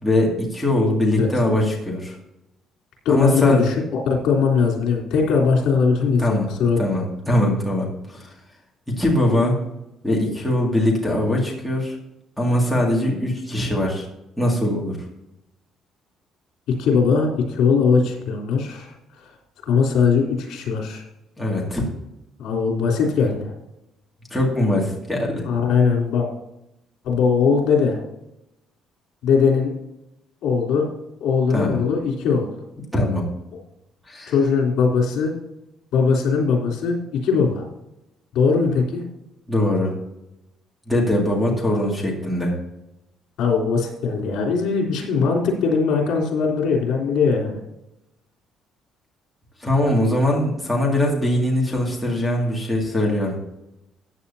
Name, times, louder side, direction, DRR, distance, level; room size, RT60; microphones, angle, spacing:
voice 1, 0.0-2.2 3.1-3.7 6.2-6.5 6.8-8.3 8.9-9.6 10.0-12.0 12.4-14.1 14.4-15.0 21.4-21.9 24.3-25.5 31.5-31.8 32.9-33.2 34.1-34.3 39.5-39.9 40.9-42.5 49.6-53.4, left 1 dB, ahead, -4 dB, 2.3 m, -21 dB
voice 2, 3.1-6.8 16.7-18.9 19.6-21.0 22.4-23.5 25.4-26.3 27.0-28.0 29.2-29.7 30.4-30.9 31.2-32.5 34.3-35.4 35.9-37.7 38.3-39.0 43.4-47.6, left 5 dB, 70° left, 1 dB, 3.5 m, -20 dB
14.5 x 9.3 x 2.8 m, 0.87 s
cardioid pair, 175°, 0 cm